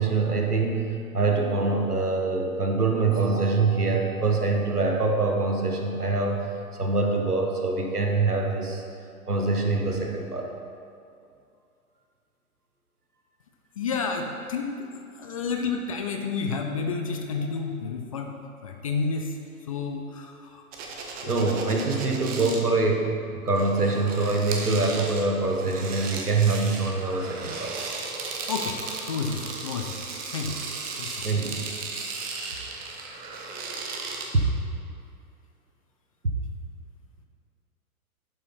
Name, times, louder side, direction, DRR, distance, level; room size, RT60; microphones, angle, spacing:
voice 1, 0.0-6.4 6.8-8.8 9.3-10.5 21.2-27.8 31.2-31.6 34.3-34.4, right 3 dB, 85° right, 2 dB, 1.3 m, -24 dB
voice 2, 13.8-14.9 15.1-18.3 18.6-20.6 28.5-28.8 29.1-30.0 30.3-30.6 31.0-31.3, left 5 dB, 25° left, 3 dB, 0.4 m, -30 dB
sound 1, 20.7-22.6 23.5-34.3, right 4 dB, 20° right, 0.8 m, -36 dB
11.0 x 5.5 x 4.3 m, 2.5 s
figure-of-eight pair, 110°, 44 cm